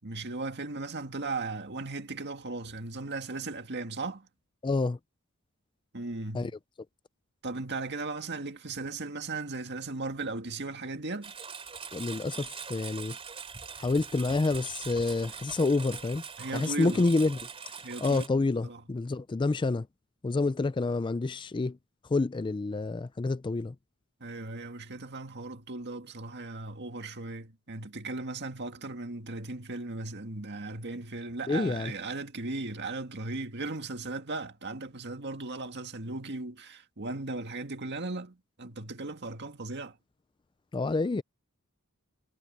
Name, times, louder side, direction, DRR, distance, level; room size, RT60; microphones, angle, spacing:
voice 1, 0.0-4.3 5.9-6.5 7.4-11.3 16.4-17.0 17.8-18.2 18.6-18.8 24.2-40.0, right 3 dB, 50° right, 2.0 m, -37 dB
voice 2, 4.6-5.0 6.3-6.5 11.9-13.2 13.8-16.2 16.5-17.4 18.0-19.9 20.2-21.8 22.1-23.8 31.5-31.9 40.7-41.2, left 3 dB, 20° left, 0.3 m, -28 dB
Engine, 11.2-18.3, right 6 dB, 25° right, 3.5 m, -43 dB
head